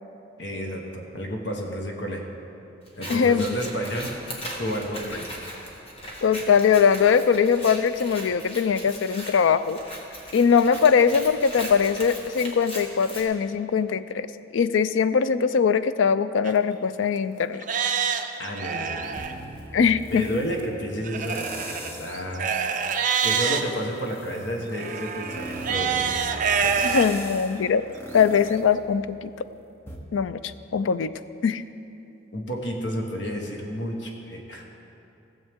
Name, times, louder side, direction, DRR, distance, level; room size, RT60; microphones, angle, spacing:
voice 1, 0.4-2.2 3.0-4.1 4.6-5.3 18.4-19.2 20.0-22.5 23.2-26.1 26.3-26.8 32.3-34.6, equal, 60° left, 1 dB, 1.2 m, -31 dB
Scissors, 2.9-13.2, equal, 30° left, 1.3 m, -39 dB
voice 2, 3.1-3.5 6.2-9.8 10.3-14.3 14.5-17.6 19.7-20.3 26.8-27.8 28.1-29.3 30.1-31.1 31.4-31.6, left 6 dB, 75° left, 13 dB, 0.4 m, -21 dB
Livestock farm animals working animals, 16.4-16.5 17.1-17.2 17.6-19.3 21.0-23.6 24.7-27.1 27.6-27.7 28.3-28.4, right 6 dB, 40° right, 0.5 m, -26 dB
sound 1, 19.2-20.6 21.2-22.3 22.7-29.4 29.9-30.0, right 1 dB, 10° left, 0.8 m, -40 dB
16.0 x 7.4 x 3.6 m, 2.8 s
head